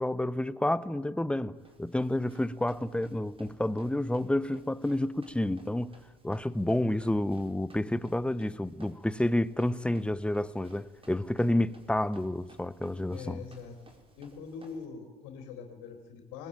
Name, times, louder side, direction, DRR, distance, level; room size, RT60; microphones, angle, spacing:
voice 1, 0.0-5.9 6.2-13.4, left 1 dB, 5° left, 0.9 m, -29 dB
Run, 1.6-14.8, right 1 dB, 20° right, 4.7 m, -58 dB
voice 2, 13.1-13.8 14.2-16.5, left 5 dB, 65° left, 4.2 m, -43 dB
21.5 x 20.5 x 9.0 m
hypercardioid pair, 90°, 29 cm